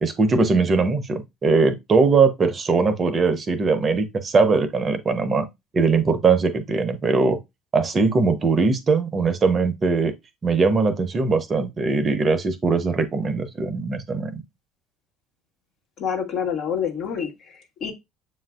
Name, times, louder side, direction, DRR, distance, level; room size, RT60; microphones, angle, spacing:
voice 1, 0.0-5.5 5.7-7.4 7.7-10.1 10.4-14.4, right 4 dB, 35° right, 0.7 m, -20 dB
voice 2, 16.0-17.9, left 7 dB, 60° left, 1.2 m, -27 dB
7.1 x 2.5 x 2.3 m
hypercardioid pair, 75°, 0 cm